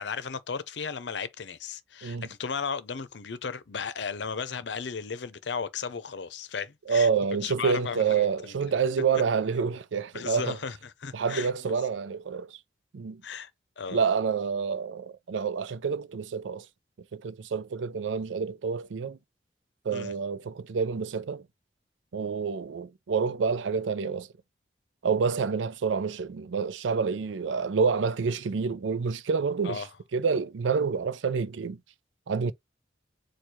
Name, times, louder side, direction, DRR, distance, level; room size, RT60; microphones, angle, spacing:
voice 1, 0.0-7.1 7.4-8.6 10.1-11.5 13.2-13.5 13.8-14.0 19.9-20.1 29.6-29.9, left 6 dB, 70° left, 0.6 m, -35 dB
voice 2, 6.9-10.6 11.1-12.6 12.9-13.2 13.9-16.7 17.1-19.2 19.8-21.4 22.1-24.3 25.0-29.8 30.1-31.8 32.3-32.5, right 5 dB, 85° right, 0.4 m, -28 dB
4.5 x 2.3 x 4.7 m
head